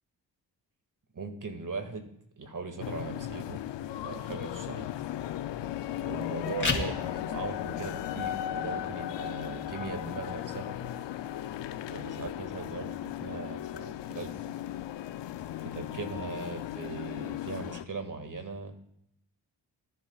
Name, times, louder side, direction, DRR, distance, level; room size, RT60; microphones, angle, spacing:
voice 1, 1.1-2.1 2.4-3.6 4.0-4.9 5.9-10.7 11.9-14.6 15.6-18.7, right 4 dB, 45° right, 6 dB, 2.2 m, -39 dB
sound 1, 2.8-17.8, left 12 dB, 75° left, 0.7 m, -36 dB
sound 2, 6.4-17.4, left 3 dB, 25° left, 2.9 m, -42 dB
19.0 x 11.0 x 2.4 m, 0.73 s
supercardioid pair, 55°, 42 cm